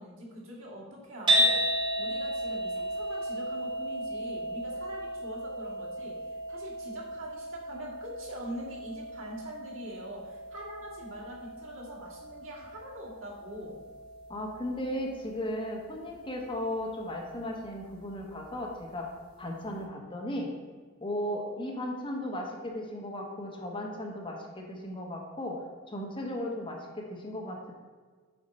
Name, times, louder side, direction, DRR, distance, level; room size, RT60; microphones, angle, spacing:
voice 1, 0.0-1.6 2.0-6.2 6.5-13.8, equal, 80° right, -4 dB, 2.3 m, -43 dB
sound 1, 1.3-17.5, equal, 25° right, 1.7 m, -34 dB
voice 2, 14.3-19.1 19.4-20.5 21.0-27.7, left 1 dB, 25° left, 0 dB, 1.3 m, -36 dB
8.0 x 4.7 x 5.4 m, 1.5 s
head